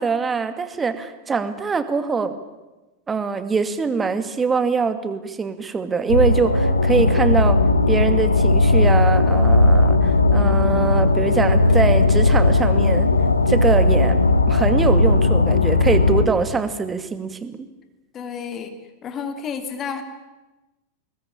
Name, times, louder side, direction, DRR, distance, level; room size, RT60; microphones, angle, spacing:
voice 1, 0.0-2.3 3.1-7.6 7.9-13.1 13.5-14.2 14.5-17.7, right 5 dB, 15° right, 10 dB, 2.3 m, -23 dB
sound 1, 6.1-16.3, left 2 dB, 80° left, 1.6 m, -17 dB
voice 2, 18.1-18.7 19.0-20.0, left 6 dB, 30° left, 6 dB, 3.2 m, -30 dB
27.0 x 20.5 x 8.9 m, 1.1 s
figure-of-eight pair, 90°, 0 cm